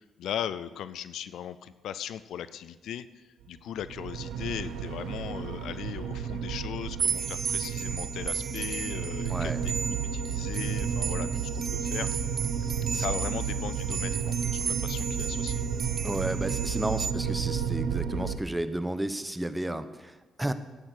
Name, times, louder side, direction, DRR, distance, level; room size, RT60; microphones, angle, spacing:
voice 1, 0.0-9.7 10.1-12.1 12.9-15.6, left 10 dB, 75° left, 15 dB, 0.4 m, -38 dB
sound 1, 3.8-18.4, right 7 dB, 80° right, 0.9 m, -32 dB
sound 2, 7.0-17.1, right 7 dB, 55° right, 0.4 m, -35 dB
voice 2, 9.3-9.6 12.9-13.1 16.0-20.5, right 1 dB, 10° right, 12 dB, 1.0 m, -32 dB
12.0 x 8.9 x 6.5 m, 1.2 s
supercardioid pair, 55°, 0 cm